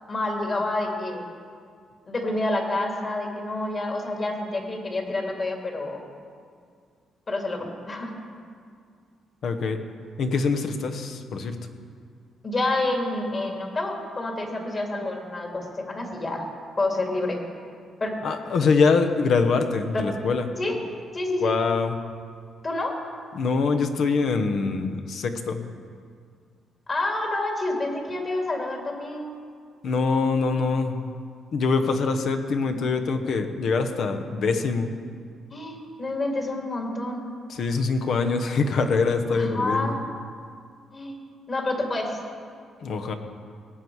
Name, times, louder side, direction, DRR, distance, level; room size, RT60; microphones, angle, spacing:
voice 1, 0.1-1.2 2.1-6.0 7.3-8.2 12.4-16.4 16.8-17.4 18.0-18.1 20.6-20.8 21.1-21.5 22.6-23.0 26.9-29.3 35.5-37.2 39.3-40.1 40.9-41.2 41.5-42.2, left 2 dB, 40° left, 1 dB, 2.6 m, -28 dB
voice 2, 9.4-9.8 10.2-11.6 18.2-20.5 21.4-22.0 23.3-25.6 29.8-31.1 31.5-34.9 37.5-40.0 42.8-43.1, left 4 dB, 65° left, 6 dB, 1.0 m, -24 dB
18.5 x 8.1 x 4.7 m, 2.1 s
cardioid pair, 90°, 0 cm